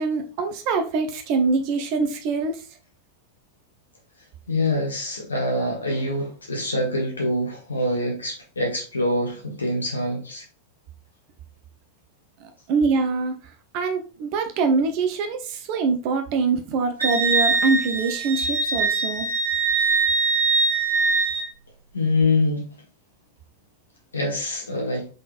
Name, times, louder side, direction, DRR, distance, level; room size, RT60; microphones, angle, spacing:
voice 1, 0.0-2.6 12.4-13.3 13.7-19.3, right 4 dB, 45° right, 0.8 m, -24 dB
voice 2, 4.5-10.4 21.9-22.7 24.1-25.1, left 2 dB, 75° left, 1.2 m, -25 dB
Wind instrument woodwind instrument, 17.0-21.5, right 4 dB, 75° right, 1.6 m, -22 dB
5.2 x 3.9 x 2.5 m
figure-of-eight pair, 90°, 0 cm